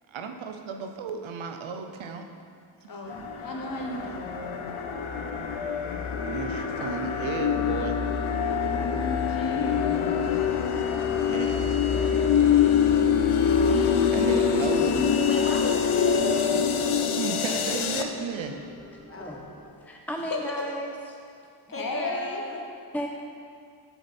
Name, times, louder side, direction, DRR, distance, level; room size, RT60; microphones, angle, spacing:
voice 1, 0.1-2.2 4.7-5.1 6.3-8.0 11.3-11.8 14.1-14.9 17.0-18.6, right 5 dB, 80° right, 5 dB, 0.7 m, -33 dB
voice 2, 2.9-4.2 9.3-9.8 20.3-20.4 21.7-22.4, left 2 dB, 45° left, 0 dB, 1.3 m, -34 dB
sound 1, 3.1-18.0, left 7 dB, 85° left, 0.6 m, -25 dB
voice 3, 10.9-11.5 15.3-16.6 19.1-19.5 21.7-22.6, left 2 dB, 30° left, 1 dB, 1.1 m, -36 dB
sound 2, 12.1-19.6, left 3 dB, 20° right, 2.0 m, -44 dB
voice 4, 19.6-21.2 22.9-23.1, equal, 5° left, 1 dB, 0.4 m, -34 dB
7.4 x 6.6 x 4.3 m, 2.3 s
wide cardioid pair, 90°, 46 cm